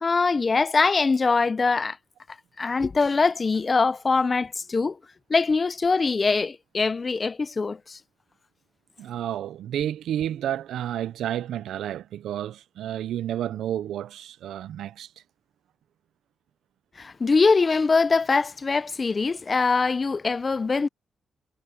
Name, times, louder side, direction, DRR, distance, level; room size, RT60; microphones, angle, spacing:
voice 1, 0.0-2.0 2.6-5.0 5.3-8.0 17.0-20.9, left 4 dB, 30° left, 0.5 m, -23 dB
voice 2, 9.0-15.1, right 11 dB, 90° right, 0.5 m, -31 dB
cardioid pair, 105°, 0 cm